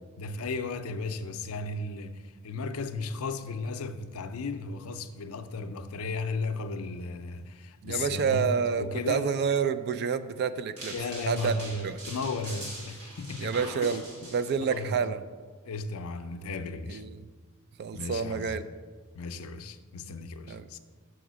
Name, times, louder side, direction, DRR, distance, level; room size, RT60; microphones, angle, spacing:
voice 1, 0.2-9.3 10.9-13.5 13.9-14.0 14.7-15.1 15.6-17.0 17.9-18.6 19.1-20.8, left 3 dB, 65° left, 0.5 m, -35 dB
voice 2, 7.8-10.9 11.3-11.5 11.8-12.0 13.4-14.0 14.3-15.2 16.9-17.2 17.8-18.6 20.5-20.6, right 6 dB, 50° right, 0.3 m, -28 dB
sound 1, 10.8-14.8, right 1 dB, 85° right, 2.1 m, -43 dB
6.2 x 4.9 x 6.1 m
head